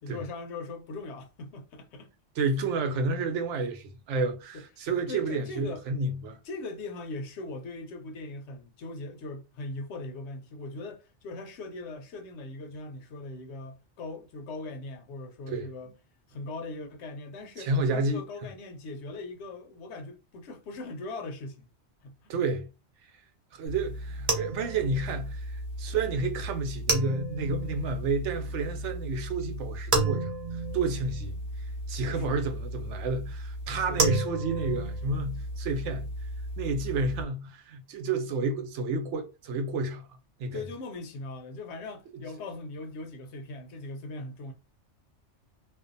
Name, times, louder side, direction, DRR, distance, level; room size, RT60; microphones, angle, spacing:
voice 1, 0.0-2.1 4.5-4.6 5.1-5.8 6.4-15.9 16.3-21.7 22.0-22.3 32.1-32.4 33.9-34.1 40.5-44.5, left 2 dB, 75° left, 0.8 m, -40 dB
voice 2, 2.4-6.4 15.5-15.7 17.6-18.2 22.3-22.7 23.5-31.3 31.9-36.0 36.6-40.0 40.4-40.6, right 3 dB, 80° right, 0.9 m, -30 dB
sound 1, 23.7-37.2, right 2 dB, 45° right, 0.6 m, -33 dB
2.5 x 2.1 x 2.5 m
omnidirectional pair, 1.2 m